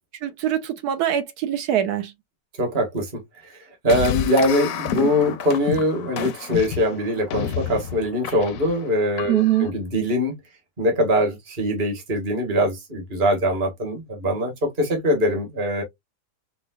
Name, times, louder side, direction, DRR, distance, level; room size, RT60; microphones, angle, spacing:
voice 1, 0.2-2.1 9.3-9.7, right 11 dB, 75° right, 1.0 m, -23 dB
voice 2, 2.6-10.3 10.8-15.8, equal, 35° right, 1.2 m, -23 dB
sound 1, 3.9-9.7, left 8 dB, 70° left, 0.8 m, -30 dB
4.5 x 2.2 x 2.2 m
omnidirectional pair, 1.8 m